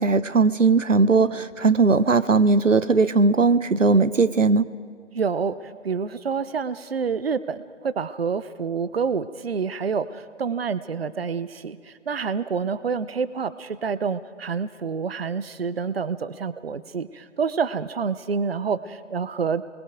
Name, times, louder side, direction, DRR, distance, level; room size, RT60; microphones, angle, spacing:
voice 1, 0.0-4.7, right 4 dB, 80° right, 15 dB, 0.9 m, -19 dB
voice 2, 5.1-19.6, right 5 dB, 50° right, 15 dB, 0.8 m, -28 dB
28.5 x 21.5 x 5.1 m, 2.1 s
figure-of-eight pair, 150°, 38 cm